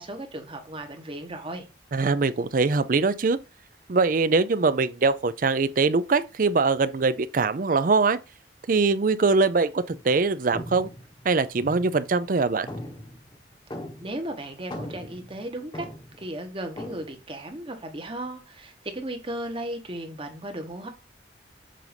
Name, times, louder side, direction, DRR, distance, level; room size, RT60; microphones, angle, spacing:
voice 1, 0.0-1.6 14.0-15.9 16.2-20.9, right 1 dB, 30° right, 1.1 m, -35 dB
voice 2, 1.9-3.4 3.9-8.2 8.7-10.9 11.2-12.7, right 4 dB, 50° right, 0.5 m, -22 dB
sound 1, 9.9-10.2 10.5-12.3 12.7-14.3 14.6-16.3 16.7-17.1, left 1 dB, 25° left, 1.1 m, -39 dB
7.6 x 2.6 x 5.1 m
head